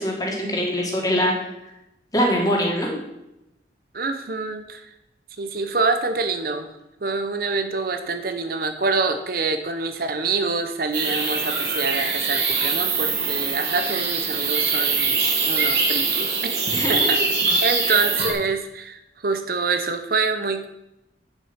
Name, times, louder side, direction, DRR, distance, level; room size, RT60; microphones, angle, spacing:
voice 1, 0.0-1.3 2.1-2.9 16.7-17.2 17.8-17.9, equal, 20° left, -1 dB, 2.5 m, -23 dB
voice 2, 3.9-4.8 5.4-6.7 7.0-16.6 16.9-17.2 17.6-20.7, right 4 dB, 55° right, 8 dB, 0.8 m, -26 dB
sound 1, 10.9-18.3, right 4 dB, 70° right, 2.4 m, -23 dB
9.7 x 7.3 x 5.7 m, 0.88 s
head